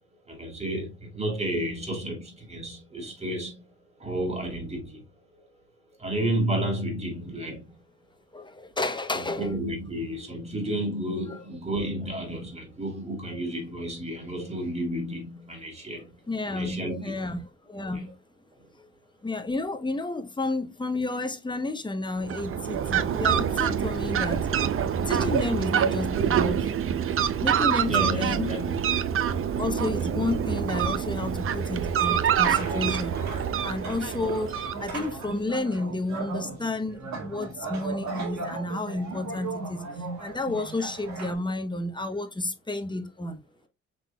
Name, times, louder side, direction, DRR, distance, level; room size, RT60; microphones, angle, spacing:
voice 1, 0.3-3.6 4.0-5.1 6.0-7.8 9.1-17.0 17.9-18.1 18.5-18.7 27.8-28.9, right 1 dB, 20° right, 2.1 m, -32 dB
voice 2, 8.3-9.5 16.3-18.2 19.2-24.5 25.1-26.7 27.4-28.5 29.6-33.2 33.6-39.8 40.2-43.4, left 2 dB, 15° left, 0.7 m, -31 dB
Fowl, 22.2-35.2, right 8 dB, 45° right, 0.5 m, -26 dB
sound 1, 32.4-41.3, right 3 dB, 65° right, 1.7 m, -36 dB
5.8 x 3.8 x 2.2 m
cardioid pair, 90°, 30 cm